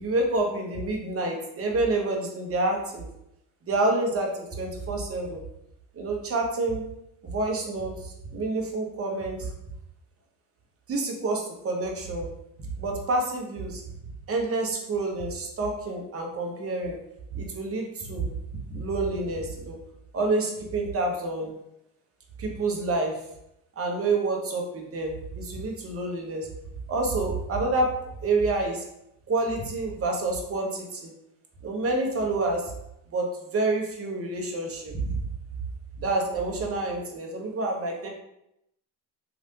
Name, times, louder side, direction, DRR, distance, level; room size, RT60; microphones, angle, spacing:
voice 1, 0.0-3.1 3.7-5.4 6.0-6.8 7.2-9.5 10.9-12.3 12.6-13.8 14.3-17.0 17.3-18.3 18.7-19.8 20.1-21.5 22.4-23.2 23.8-26.5 26.9-27.9 28.2-28.8 29.3-31.1 31.6-32.7 33.1-35.2 36.0-38.1, right 2 dB, 30° right, 1 dB, 0.8 m, -28 dB
3.1 x 2.4 x 2.8 m, 0.80 s
supercardioid pair, 75°, 45 cm